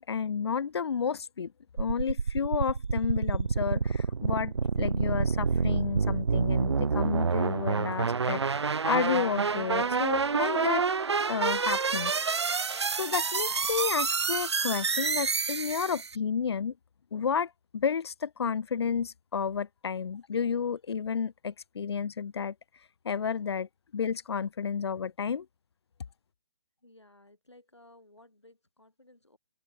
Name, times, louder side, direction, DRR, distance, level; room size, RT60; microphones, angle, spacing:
voice 1, 0.0-1.5 1.8-10.8 11.3-12.1 13.0-16.7 17.1-22.5 23.0-25.5, left 6 dB, 70° left, 0.5 m, -31 dB
sound 1, 1.8-16.2, right 5 dB, 80° right, 0.5 m, -28 dB
voice 2, 26.8-29.4, left 1 dB, 90° left, 5.8 m, -57 dB
figure-of-eight pair, 135°, 14 cm